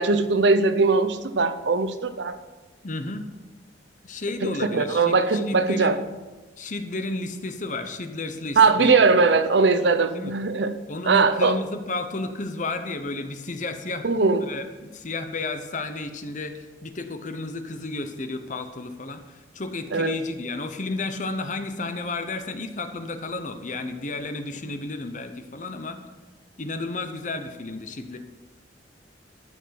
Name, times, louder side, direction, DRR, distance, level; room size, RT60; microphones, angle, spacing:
voice 1, 0.0-2.4 4.4-6.0 8.6-10.8 11.0-11.6 14.0-14.5 19.9-20.1, right 4 dB, 70° right, 11 dB, 0.7 m, -20 dB
voice 2, 2.8-3.3 4.0-6.0 6.6-9.1 10.1-10.3 10.9-26.0 26.6-28.2, left 2 dB, 40° left, 8 dB, 0.9 m, -32 dB
13.0 x 6.0 x 6.0 m, 1.2 s
head